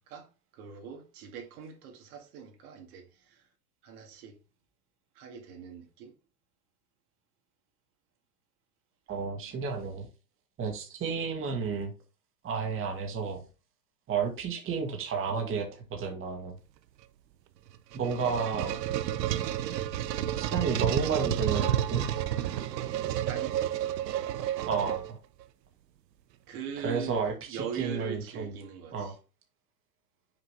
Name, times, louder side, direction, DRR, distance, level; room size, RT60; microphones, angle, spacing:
voice 1, 0.1-3.4 3.8-4.4 5.2-6.1 10.7-10.8 23.0-23.6 26.5-27.2 27.5-29.1, right 7 dB, 60° right, 2.2 m, -41 dB
voice 2, 9.1-10.1 10.6-11.9 12.4-13.4 14.1-16.6 17.9-18.8 20.4-22.1 24.6-25.2 26.8-28.5 28.9-29.1, right 5 dB, 25° right, 1.9 m, -32 dB
sound 1, 17.7-25.4, right 11 dB, 80° right, 0.8 m, -30 dB
6.4 x 4.8 x 3.4 m
hypercardioid pair, 120°, 49 cm